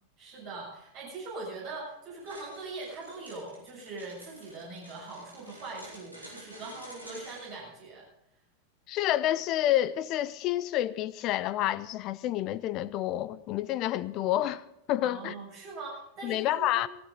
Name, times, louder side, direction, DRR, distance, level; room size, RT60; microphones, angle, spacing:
voice 1, 0.2-8.0 15.0-16.9, right 3 dB, 40° right, 7.6 m, -42 dB
sound 1, 2.2-7.5, right 1 dB, 90° right, 6.0 m, -49 dB
voice 2, 8.9-15.3 16.2-16.9, left 13 dB, 40° left, 0.7 m, -29 dB
18.5 x 16.0 x 3.9 m
figure-of-eight pair, 90°, 0 cm